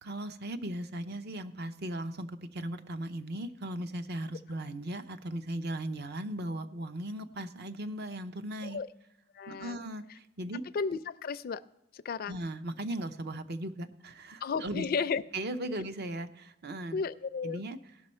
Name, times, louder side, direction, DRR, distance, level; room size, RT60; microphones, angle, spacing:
voice 1, 0.0-8.8 9.5-10.0 10.4-10.6 12.3-14.8 15.3-17.0 17.4-17.8, right 1 dB, 55° right, 10 dB, 0.7 m, -37 dB
voice 2, 9.3-9.8 10.7-11.6 11.9-12.4 14.4-15.2 16.9-17.6, left 5 dB, 50° left, 14 dB, 0.4 m, -33 dB
17.5 x 6.2 x 4.3 m, 0.90 s
head